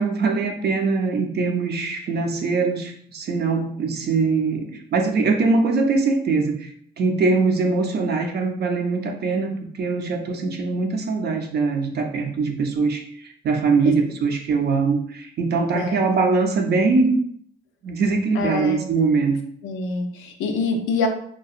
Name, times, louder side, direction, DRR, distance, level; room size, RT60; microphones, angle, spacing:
voice 1, 0.0-17.2 17.8-19.4, right 4 dB, 55° right, 4 dB, 0.5 m, -22 dB
voice 2, 18.3-18.9 19.6-21.1, left 4 dB, 90° left, 4 dB, 0.5 m, -25 dB
2.7 x 2.2 x 2.4 m, 0.62 s
cardioid pair, 90°, 20 cm